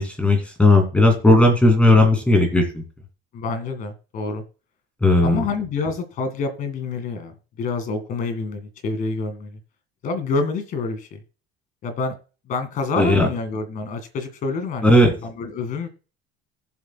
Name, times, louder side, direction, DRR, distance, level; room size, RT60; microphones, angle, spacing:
voice 1, 0.0-2.8 5.0-5.4 13.0-13.3 14.8-15.1, left 2 dB, 5° left, 3 dB, 2.6 m, -16 dB
voice 2, 3.3-4.4 5.2-9.6 10.0-11.2 11.8-12.1 12.5-14.9 15.2-15.9, left 4 dB, 45° left, 9 dB, 2.0 m, -27 dB
18.5 x 7.7 x 2.3 m, 0.35 s
cardioid pair, 175°, 19 cm